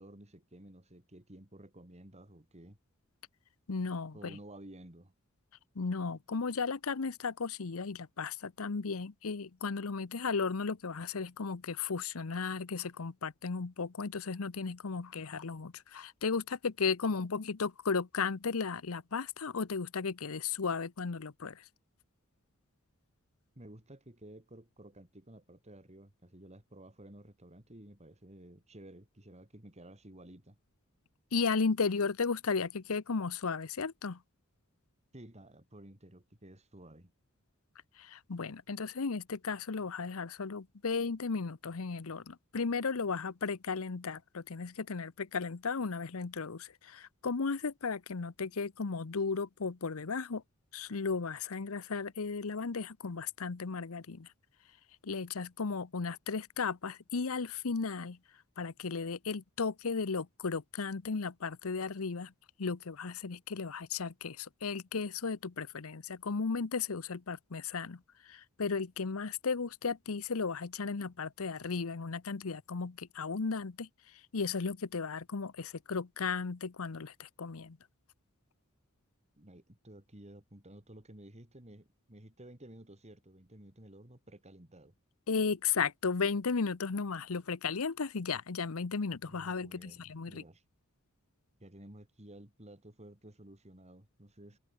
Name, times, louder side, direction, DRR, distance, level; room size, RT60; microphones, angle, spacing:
voice 1, 0.0-2.8 4.1-5.1 23.5-30.6 35.1-37.1 79.4-84.9 89.3-90.6 91.6-94.6, right 1 dB, 30° right, 3.2 m, -53 dB
voice 2, 3.7-4.4 5.7-21.7 31.3-34.2 38.0-50.4 50.7-54.3 55.0-58.2 58.6-62.3 62.6-77.8 85.3-90.4, left 5 dB, 75° left, 0.8 m, -35 dB
head